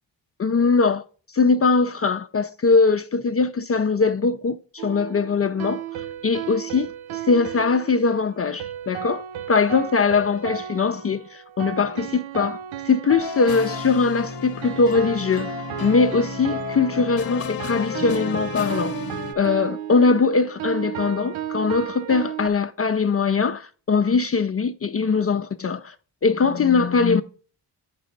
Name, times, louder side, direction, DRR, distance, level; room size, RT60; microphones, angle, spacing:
voice 1, 0.4-1.0 1.3-5.8 6.2-15.6 15.8-25.9 26.2-27.2, left 4 dB, 30° left, 0.5 m, -21 dB
sound 1, 4.8-22.5, right 11 dB, 85° right, 0.6 m, -34 dB
sound 2, 13.2-19.3, left 7 dB, 50° left, 0.9 m, -33 dB
7.4 x 6.1 x 3.9 m
cardioid pair, 105°, 46 cm